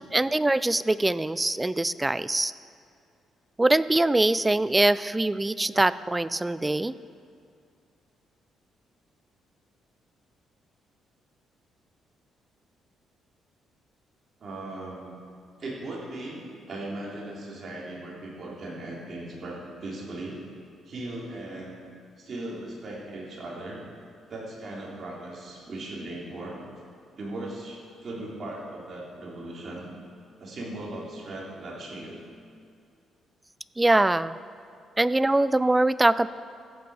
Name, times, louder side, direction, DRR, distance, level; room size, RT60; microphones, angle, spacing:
voice 1, 0.1-2.5 3.6-6.9 33.8-34.4 35.0-36.3, right 2 dB, 15° right, 16 dB, 0.3 m, -23 dB
voice 2, 14.4-15.2 15.6-16.4 16.7-20.4 20.9-21.8 22.2-23.8 24.3-26.6 27.1-29.8 30.4-32.2, right 2 dB, 50° right, -4 dB, 3.6 m, -38 dB
14.5 x 8.5 x 5.0 m, 2.4 s
cardioid pair, 90°, 0 cm